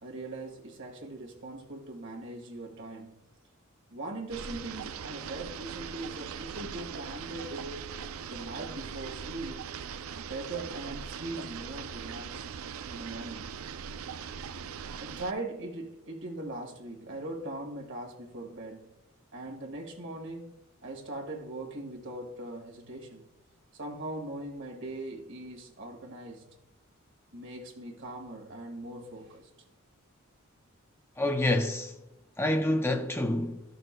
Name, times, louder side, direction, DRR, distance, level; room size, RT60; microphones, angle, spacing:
voice 1, 0.0-3.1 3.9-7.8 8.3-9.7 10.2-12.5 12.9-13.5 15.0-18.9 19.3-20.5 20.8-23.3 23.7-26.5 27.3-29.5, right 2 dB, 60° right, 1.8 m, -40 dB
sound 1, 4.3-15.3, right 7 dB, 75° right, 0.4 m, -40 dB
voice 2, 31.2-31.9 32.4-33.6, left 1 dB, 10° left, 0.5 m, -27 dB
14.0 x 6.6 x 2.2 m
head